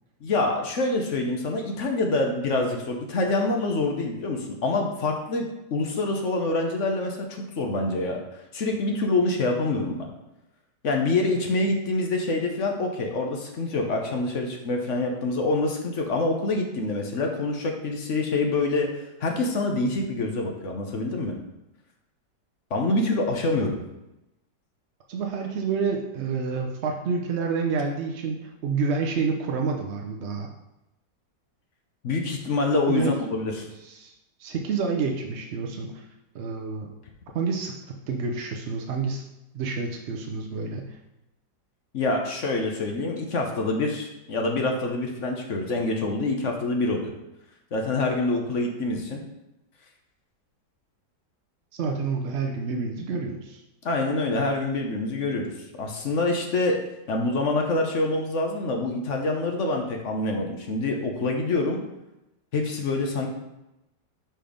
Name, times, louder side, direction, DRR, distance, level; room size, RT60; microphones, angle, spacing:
voice 1, 0.2-8.2 8.5-10.1 10.8-18.9 19.2-21.3 22.7-23.8 32.0-33.7 41.9-47.1 47.7-49.2 53.8-55.5 55.8-61.8 62.5-63.3, left 2 dB, 50° left, 2 dB, 1.0 m, -26 dB
voice 2, 25.1-30.5 32.9-33.2 33.8-34.1 34.4-36.0 36.3-36.9 37.3-37.7 38.1-39.2 39.5-40.9 51.7-53.6, right 5 dB, 65° right, 2 dB, 0.6 m, -28 dB
5.2 x 4.5 x 5.1 m, 0.93 s
omnidirectional pair, 1.9 m